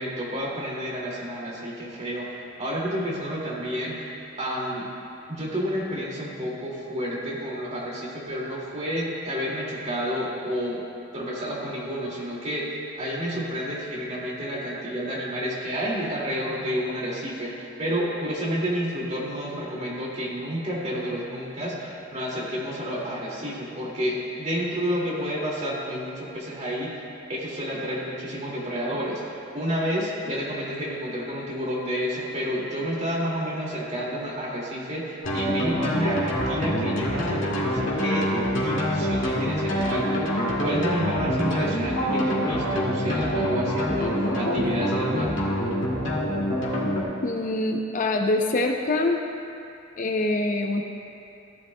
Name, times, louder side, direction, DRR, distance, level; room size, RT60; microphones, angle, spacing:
voice 1, 0.0-4.1 4.4-4.8 5.3-10.8 11.1-27.0 27.3-29.2 29.5-38.3 38.5-40.3 40.6-45.4, equal, 35° right, -5 dB, 2.2 m, -30 dB
sound 1, 35.2-47.0, equal, 75° left, 2.1 m, -25 dB
voice 2, 47.2-49.2 50.0-50.8, left 2 dB, 40° left, 3 dB, 0.5 m, -24 dB
15.5 x 11.5 x 2.2 m, 2.6 s
head